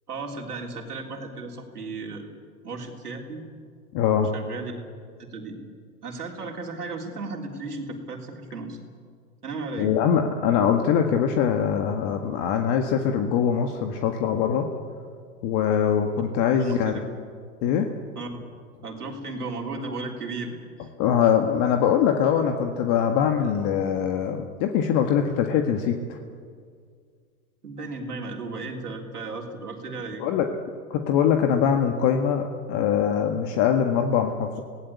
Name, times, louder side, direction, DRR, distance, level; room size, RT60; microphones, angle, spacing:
voice 1, 0.1-2.3 2.6-3.4 4.3-4.8 5.2-5.6 6.0-8.8 9.4-9.9 16.6-17.0 18.2-18.4 18.8-20.9 27.6-30.3, right 3 dB, 90° right, 0 dB, 3.7 m, -35 dB
voice 2, 3.9-4.3 9.8-14.7 15.4-17.0 17.6-17.9 21.0-26.2 30.2-30.5 30.9-34.6, left 8 dB, 40° left, 5 dB, 1.7 m, -23 dB
26.5 x 18.5 x 8.5 m, 2.1 s
hypercardioid pair, 110°, 44 cm